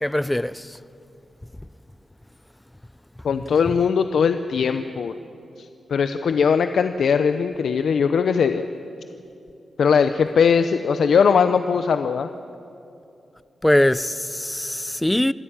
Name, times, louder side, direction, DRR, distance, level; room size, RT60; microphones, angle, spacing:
voice 1, 0.0-0.7 13.6-15.3, left 1 dB, 10° left, 0.5 m, -21 dB
voice 2, 3.2-5.1 5.6-8.6 9.8-12.3, left 6 dB, 80° left, 0.6 m, -20 dB
25.0 x 14.0 x 8.8 m
wide cardioid pair, 100°, 0 cm